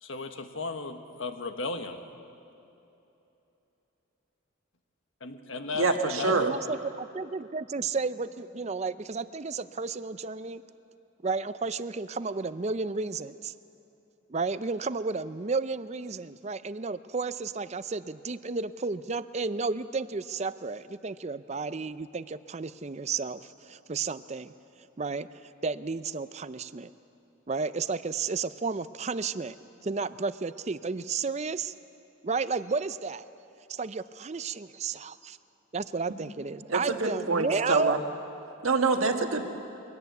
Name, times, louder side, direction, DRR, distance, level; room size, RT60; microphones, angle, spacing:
voice 1, 0.0-2.0 5.2-6.3, left 3 dB, 70° left, 7 dB, 1.4 m, -35 dB
voice 2, 5.7-6.5 36.7-38.0 38.6-39.4, right 3 dB, 85° right, 4 dB, 1.7 m, -26 dB
voice 3, 6.2-10.6 11.2-13.5 14.3-24.5 25.0-26.9 27.5-29.6 29.8-31.7 32.2-33.3 33.7-35.4 35.7-37.9, right 4 dB, 30° right, 14 dB, 0.5 m, -32 dB
22.5 x 17.5 x 8.2 m, 2.9 s
head